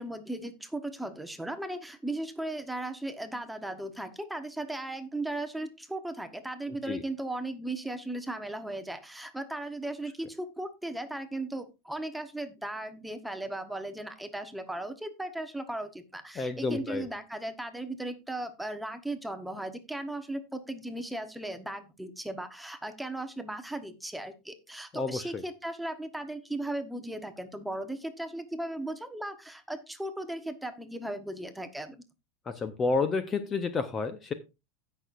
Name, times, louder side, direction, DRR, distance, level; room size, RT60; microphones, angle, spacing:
voice 1, 0.0-32.0, right 1 dB, 5° right, 8 dB, 0.9 m, -37 dB
voice 2, 16.4-17.1 24.9-25.4 32.5-34.3, left 4 dB, 20° left, 10 dB, 0.7 m, -30 dB
16.5 x 6.2 x 2.5 m, 0.26 s
supercardioid pair, 160°, 0 cm